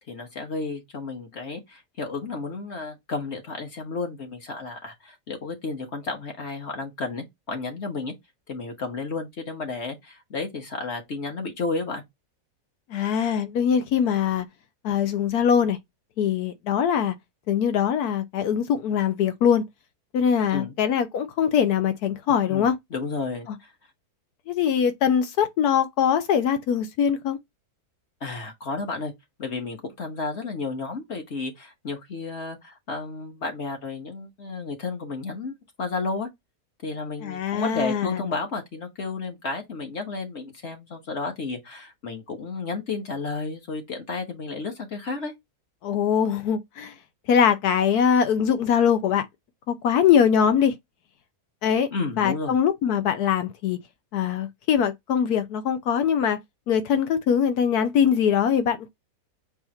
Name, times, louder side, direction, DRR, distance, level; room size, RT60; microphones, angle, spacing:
voice 1, 0.1-8.1 8.5-12.0 20.5-20.7 22.5-23.7 28.2-29.1 29.4-35.5 35.8-36.3 36.8-45.3 51.9-52.5, left 3 dB, 45° left, 1.5 m, -32 dB
voice 2, 12.9-14.5 14.8-15.8 16.2-17.1 17.5-19.6 20.1-22.8 23.5-23.6 24.5-27.4 37.2-38.2 45.8-46.9 47.3-49.3 49.7-50.7 51.6-51.9 52.2-53.8 54.1-56.4 56.7-59.0, left 8 dB, 80° left, 1.2 m, -22 dB
4.7 x 2.6 x 4.2 m
omnidirectional pair, 1.7 m